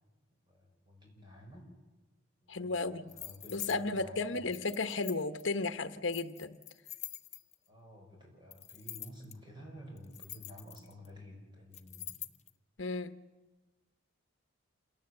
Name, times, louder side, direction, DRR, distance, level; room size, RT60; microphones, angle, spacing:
voice 1, 0.5-1.7 2.4-4.4 7.7-12.3, equal, 25° right, 1 dB, 5.6 m, -52 dB
voice 2, 2.5-3.1 3.5-6.6 12.8-13.1, left 3 dB, 65° left, 10 dB, 1.0 m, -34 dB
sound 1, 3.1-3.8 4.5-5.4 6.1-7.7 8.5-9.3 10.0-11.1 11.7-12.5, left 12 dB, 35° left, 0.7 m, -45 dB
27.5 x 17.5 x 7.9 m, 1.2 s
head